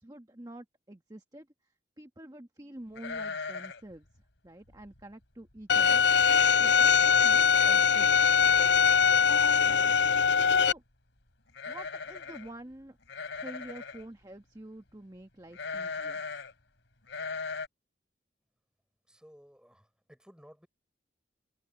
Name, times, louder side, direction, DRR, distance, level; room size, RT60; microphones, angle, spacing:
voice 1, 0.0-1.5 2.0-4.1 4.4-6.1 6.6-8.3 9.6-9.9 10.6-10.8 11.7-13.0 13.4-16.2, right 1 dB, 20° right, 1.2 m, -47 dB
sound 1, 3.0-3.9 4.2-4.3 4.7-5.0 5.6-5.7 6.0-6.5 6.8-6.9 8.0-8.1 8.4-8.8 11.5-12.5 13.1-14.0 15.5-16.5 17.1-17.7, left 4 dB, 85° left, 3.5 m, -38 dB
Bowed string instrument, 5.7-10.7, left 6 dB, 65° left, 0.4 m, -22 dB
voice 2, 19.1-20.7, equal, 5° right, 6.6 m, -56 dB
open air
head